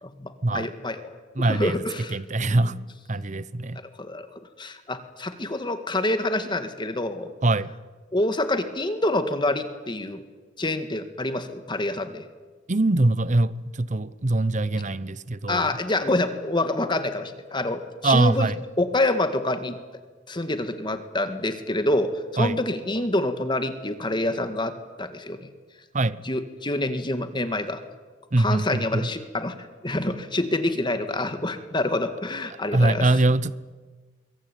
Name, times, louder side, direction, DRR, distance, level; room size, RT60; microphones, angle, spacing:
voice 1, 0.0-2.2 2.4-2.7 4.0-4.3 4.6-7.3 8.1-10.2 10.6-12.2 15.5-18.5 18.8-19.7 20.3-25.4 26.3-27.8 28.4-29.6 29.8-33.1, left 2 dB, 25° left, 1.9 m, -27 dB
voice 2, 1.3-1.8 2.1-2.7 3.1-3.8 7.4-7.7 12.7-15.8 18.0-18.6 22.4-22.6 25.9-26.2 28.3-29.1 32.7-33.5, right 2 dB, 40° right, 0.9 m, -23 dB
25.5 x 22.5 x 9.2 m
head